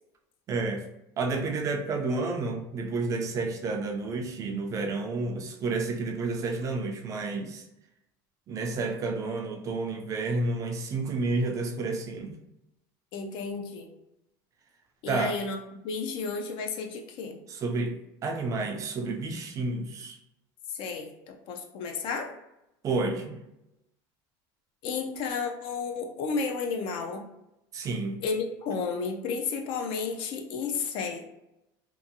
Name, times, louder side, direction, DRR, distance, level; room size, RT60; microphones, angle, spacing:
voice 1, 0.5-0.8 1.2-7.6 8.5-12.4 15.1-15.4 17.5-20.2 22.8-23.4 27.7-28.2, right 3 dB, 30° right, 3 dB, 0.4 m, -30 dB
voice 2, 13.1-13.9 15.0-15.6 15.8-17.4 20.7-22.3 24.8-27.3 28.2-31.2, left 5 dB, 55° left, 4 dB, 0.5 m, -32 dB
2.6 x 2.5 x 2.6 m, 0.86 s
cardioid pair, 140°, 11 cm